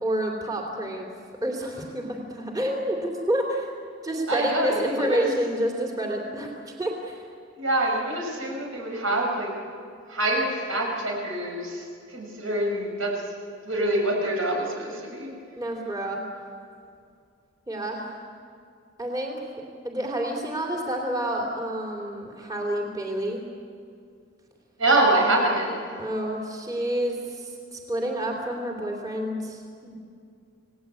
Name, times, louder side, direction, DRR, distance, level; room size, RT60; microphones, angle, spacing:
voice 1, 0.0-1.1 1.4-3.7 4.0-6.5 6.8-7.2 15.6-16.2 17.7-18.2 19.0-19.4 19.8-23.4 26.0-29.9, right 1 dB, 20° right, -1 dB, 3.0 m, -29 dB
voice 2, 4.3-5.2 7.6-9.5 10.1-13.1 13.6-15.3 24.8-25.8, right 1 dB, 85° right, 0 dB, 6.2 m, -25 dB
28.5 x 18.5 x 8.4 m, 2.3 s
head